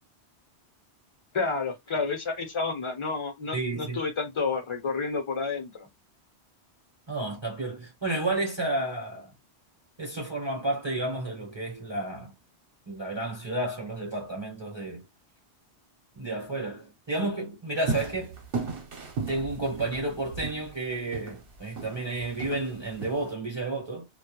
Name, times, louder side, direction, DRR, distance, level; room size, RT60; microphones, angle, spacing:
voice 1, 1.3-5.9, left 4 dB, 35° left, 0.6 m, -30 dB
voice 2, 3.5-4.0 7.1-9.3 10.0-12.3 12.9-15.0 16.1-18.4 19.3-24.1, right 2 dB, 30° right, 0.7 m, -31 dB
sound 1, 17.9-23.3, right 4 dB, 60° right, 0.9 m, -36 dB
2.2 x 2.1 x 2.9 m
omnidirectional pair, 1.1 m